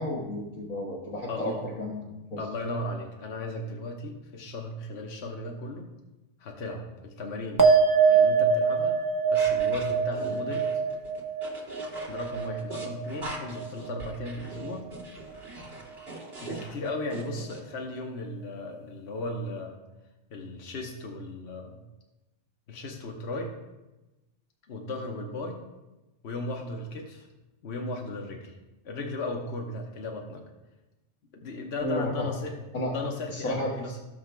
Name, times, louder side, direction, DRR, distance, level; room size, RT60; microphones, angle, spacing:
voice 1, 0.0-2.4 31.8-32.3 32.7-32.9 33.3-33.7, left 1 dB, 90° left, -5 dB, 1.6 m, -32 dB
voice 2, 1.3-1.6 2.4-5.9 6.4-7.7 8.1-9.0 9.3-10.7 12.1-14.9 16.4-19.8 20.3-21.8 22.7-23.5 24.7-25.6 26.2-27.3 27.6-28.5 28.8-30.4 31.3-32.6 32.9-34.0, left 2 dB, 60° left, 1 dB, 1.2 m, -36 dB
sound 1, 7.6-14.3 14.6-15.2, right 5 dB, 20° right, 0.5 m, -25 dB
sound 2, 9.3-17.6, right 2 dB, 50° right, 2.6 m, -42 dB
16.0 x 6.4 x 2.2 m, 1.0 s
omnidirectional pair, 1.3 m